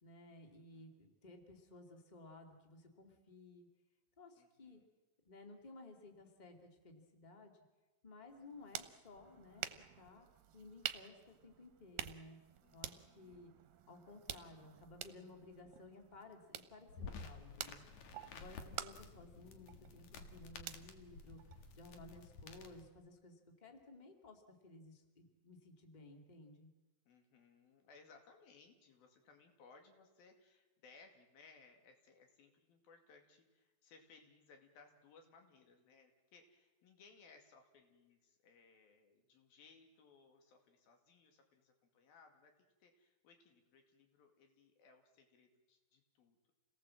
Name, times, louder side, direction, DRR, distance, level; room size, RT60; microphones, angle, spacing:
voice 1, 0.0-3.7 4.2-4.8 5.2-7.5 8.0-9.7 10.0-10.3 10.5-12.4 12.7-13.5 13.9-26.7, left 2 dB, 15° left, 4 dB, 2.1 m, -57 dB
voice 2, 0.5-0.9 4.4-4.9 12.6-13.5 27.1-42.5 42.8-46.5, left 4 dB, 85° left, 4 dB, 4.3 m, -65 dB
sound 1, 8.3-22.0, right 12 dB, 75° right, 2.5 m, -50 dB
sound 2, 16.9-22.9, left 4 dB, 60° left, 2.7 m, -53 dB
28.0 x 18.5 x 7.7 m, 1.2 s
omnidirectional pair, 4.1 m